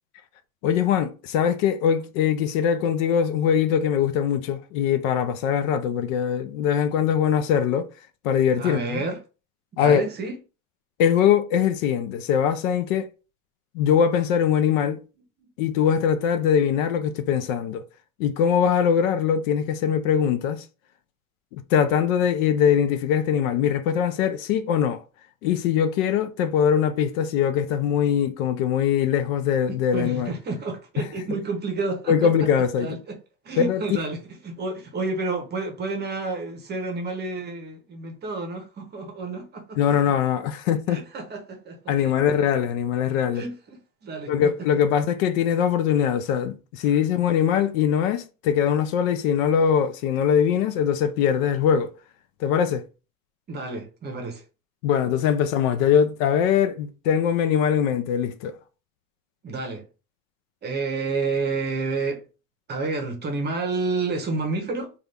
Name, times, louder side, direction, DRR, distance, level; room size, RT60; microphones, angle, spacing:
voice 1, 0.6-7.9 8.2-9.0 9.8-10.0 11.0-13.1 13.7-15.0 15.6-17.8 18.2-20.6 21.5-25.0 25.4-30.3 32.1-33.0 33.6-33.8 39.8-41.0 41.9-43.4 44.3-51.9 52.4-52.8 54.8-58.5, left 8 dB, 65° left, 0.6 m, -22 dB
voice 2, 8.6-9.2 9.8-10.4 15.4-15.5 29.7-32.5 32.8-33.2 33.4-40.0 40.9-42.2 43.3-44.3 53.5-54.4 59.4-59.9 60.6-62.2 62.7-64.9, right 3 dB, 25° right, 0.7 m, -30 dB
2.5 x 2.4 x 3.3 m
supercardioid pair, 115°, 43 cm